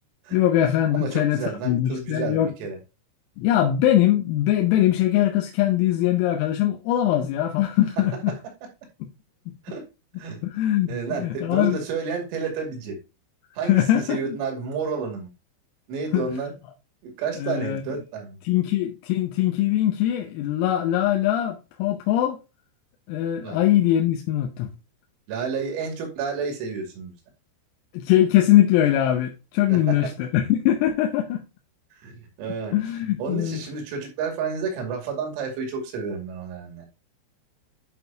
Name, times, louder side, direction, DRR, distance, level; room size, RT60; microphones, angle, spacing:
voice 1, 0.3-2.5 3.4-8.4 9.0-9.1 10.4-10.9 11.2-11.8 13.6-14.4 16.1-16.3 17.4-17.8 18.5-22.4 23.1-24.7 27.9-31.4 32.7-33.6, left 12 dB, 90° left, 3.6 m, -22 dB
voice 2, 0.9-2.8 8.3-8.4 9.7-9.8 10.2-10.4 10.9-13.0 13.6-15.3 15.9-16.5 17.0-18.4 23.4-23.6 25.3-27.1 29.7-30.1 32.0-32.8 33.2-36.9, right 5 dB, 85° right, 5.1 m, -30 dB
11.0 x 5.9 x 2.8 m
omnidirectional pair, 6.0 m